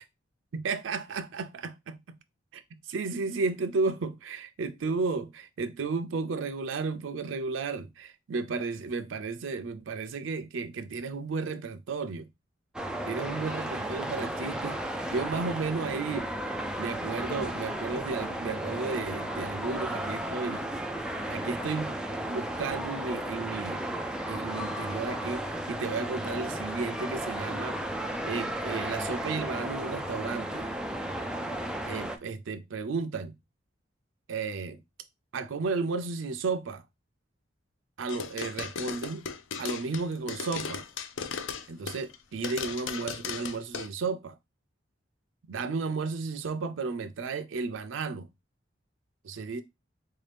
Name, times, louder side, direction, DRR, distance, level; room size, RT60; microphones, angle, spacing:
voice 1, 0.5-2.0 2.5-2.6 2.9-12.3 13.1-14.8 15.1-16.3 16.8-20.6 21.3-21.9 22.3-23.8 24.3-30.7 31.8-33.3 34.3-34.8 35.3-36.8 38.0-39.3 39.6-40.8 41.7-44.4 45.5-48.3 49.2-49.6, right 4 dB, 80° right, 0.5 m, -33 dB
sound 1, 12.7-32.2, right 1 dB, 5° right, 0.4 m, -34 dB
sound 2, 38.1-42.1 42.4-43.9, left 6 dB, 85° left, 0.5 m, -36 dB
3.8 x 2.7 x 3.3 m
head